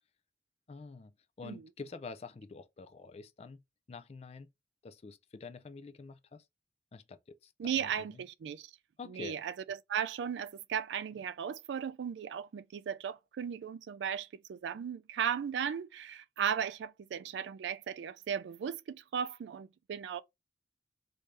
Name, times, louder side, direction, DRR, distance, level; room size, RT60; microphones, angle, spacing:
voice 1, 0.7-3.6 3.9-4.5 4.8-6.4 6.9-8.2 9.0-9.4, left 4 dB, 35° left, 0.3 m, -47 dB
voice 2, 7.6-8.7 9.1-20.2, right 8 dB, 70° right, 0.3 m, -36 dB
3.2 x 2.6 x 3.3 m
head